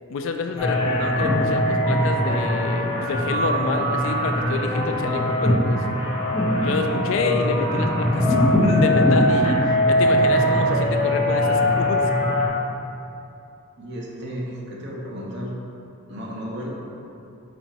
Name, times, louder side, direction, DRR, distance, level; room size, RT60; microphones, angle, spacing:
voice 1, 0.1-5.8 6.6-8.4 8.6-9.6 9.9-12.0, left 4 dB, 60° left, 5 dB, 0.3 m, -27 dB
sound 1, 0.6-12.5, equal, 25° left, 0.7 m, -21 dB
voice 2, 13.8-15.5 16.1-16.7, equal, 50° right, -3 dB, 0.7 m, -33 dB
4.2 x 2.8 x 4.4 m, 2.7 s
head